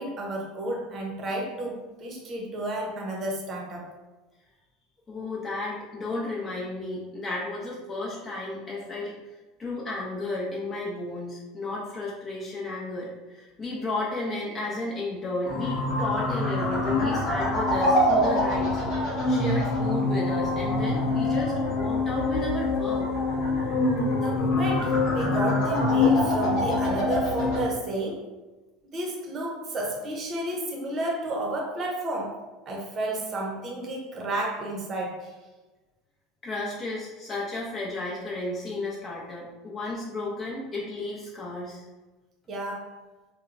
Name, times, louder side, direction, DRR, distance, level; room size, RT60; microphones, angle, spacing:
voice 1, 0.0-3.9 24.1-28.2 28.9-32.4 32.7-35.3 42.5-42.9, right 1 dB, 40° right, -1 dB, 0.7 m, -31 dB
voice 2, 5.1-9.1 9.6-18.8 19.3-23.1 36.4-41.9, left 2 dB, 30° left, -6 dB, 0.7 m, -33 dB
sound 1, 15.4-27.6, left 2 dB, 60° left, 0.9 m, -25 dB
2.8 x 2.2 x 2.5 m, 1.2 s
hypercardioid pair, 80°, 0 cm